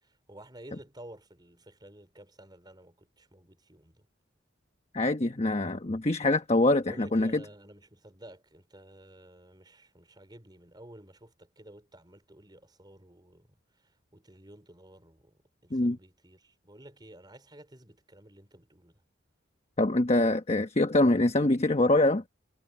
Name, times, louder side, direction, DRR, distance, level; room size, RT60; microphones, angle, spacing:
voice 1, 0.3-4.1 6.9-13.5 14.1-15.3 15.6-19.0, right 1 dB, 20° right, 4.7 m, -52 dB
voice 2, 4.9-7.4 15.7-16.0 19.8-22.2, left 2 dB, 35° left, 1.1 m, -24 dB
head